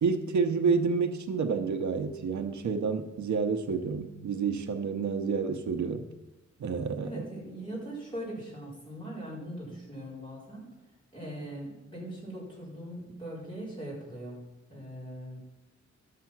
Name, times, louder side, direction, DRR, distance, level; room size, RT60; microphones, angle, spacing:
voice 1, 0.0-6.0 6.6-7.2, right 5 dB, 75° right, 7 dB, 0.8 m, -29 dB
voice 2, 7.0-10.6 11.1-14.4 14.7-15.4, right 1 dB, 15° left, -7 dB, 4.3 m, -40 dB
12.0 x 6.8 x 6.0 m, 1.0 s
wide cardioid pair, 170°, 29 cm